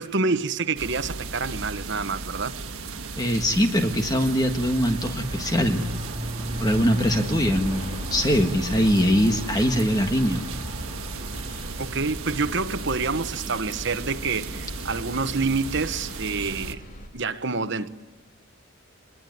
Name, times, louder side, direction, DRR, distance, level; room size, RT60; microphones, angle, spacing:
voice 1, 0.0-2.6 11.8-16.8 17.1-17.9, right 4 dB, 55° right, 1.2 m, -27 dB
sound 1, 0.8-16.8, right 3 dB, 85° right, 1.4 m, -35 dB
sound 2, 2.4-12.5, equal, 25° right, 4.6 m, -37 dB
voice 2, 3.2-5.8 6.6-10.4, equal, 20° left, 1.6 m, -22 dB
sound 3, 6.4-17.1, equal, 40° left, 3.1 m, -41 dB
23.5 x 21.5 x 9.5 m
head